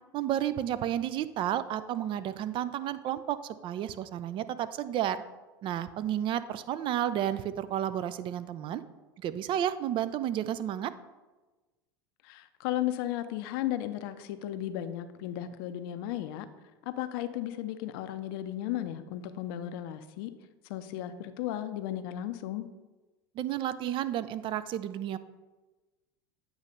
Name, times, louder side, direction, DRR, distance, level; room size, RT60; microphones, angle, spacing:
voice 1, 0.1-5.2 5.6-8.8 9.2-10.9 23.3-25.2, right 11 dB, 40° right, 14 dB, 0.4 m, -31 dB
voice 2, 12.2-16.5 16.9-20.3 20.7-22.7, left 12 dB, 60° left, 11 dB, 0.6 m, -35 dB
8.3 x 3.1 x 5.2 m, 1.2 s
hypercardioid pair, 90°, 13 cm